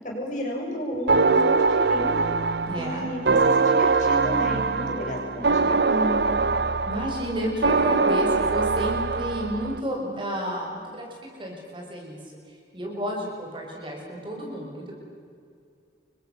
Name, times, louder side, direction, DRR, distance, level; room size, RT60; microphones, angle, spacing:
voice 1, 0.0-2.3 2.7-6.4, equal, 45° left, -1 dB, 6.7 m, -32 dB
sound 1, 1.1-9.8, right 4 dB, 65° right, 0.7 m, -23 dB
voice 2, 2.7-3.1 6.9-11.1 11.4-12.2 12.7-14.9, equal, 30° right, 0 dB, 6.2 m, -31 dB
29.5 x 23.5 x 7.0 m, 2.3 s
head